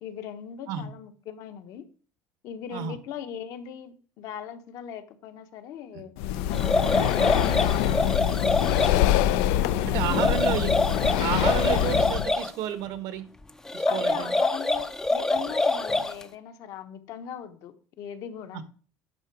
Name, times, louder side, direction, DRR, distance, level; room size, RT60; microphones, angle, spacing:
voice 1, 0.0-1.8 2.4-8.8 9.6-10.7 13.9-18.6, left 8 dB, 55° left, 7 dB, 1.1 m, -40 dB
Breathing, 6.2-12.3, left 11 dB, 80° left, 0.6 m, -24 dB
sound 1, 6.5-9.0 10.0-12.5 13.7-16.2, left 2 dB, 5° left, 0.6 m, -26 dB
voice 2, 9.8-10.7 11.2-13.3 13.7-14.3 18.5-18.6, right 10 dB, 60° right, 12 dB, 1.2 m, -31 dB
9.8 x 5.8 x 4.7 m, 0.42 s
cardioid pair, 155°, 8 cm